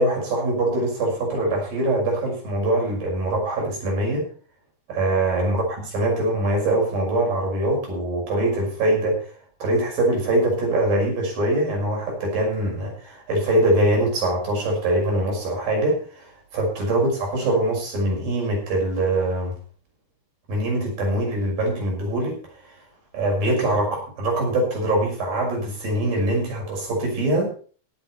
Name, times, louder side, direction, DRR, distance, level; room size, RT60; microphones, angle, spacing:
voice 1, 0.0-4.3 4.9-5.6 5.9-9.3 9.6-19.6 20.5-22.4 23.1-27.5, right 1 dB, 60° right, 0 dB, 7.5 m, -23 dB
18.5 x 8.3 x 4.5 m, 0.41 s
omnidirectional pair, 4.7 m